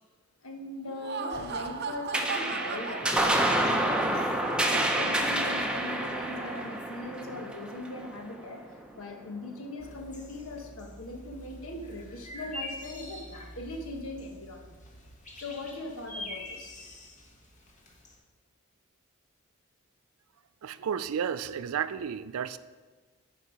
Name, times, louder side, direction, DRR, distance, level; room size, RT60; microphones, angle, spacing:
voice 1, 0.4-3.1 3.7-8.7 9.0-14.7 15.3-17.1, left 2 dB, 75° left, 3 dB, 1.3 m, -40 dB
Laughter, 0.8-4.1, right 5 dB, 50° right, 0.6 m, -37 dB
sound 1, 2.1-8.9, right 1 dB, 5° right, 0.7 m, -28 dB
sound 2, 9.8-18.2, left 1 dB, 35° left, 1.5 m, -45 dB
voice 2, 20.6-22.6, right 7 dB, 90° right, 15 dB, 0.4 m, -32 dB
9.9 x 5.6 x 5.0 m, 1.3 s
head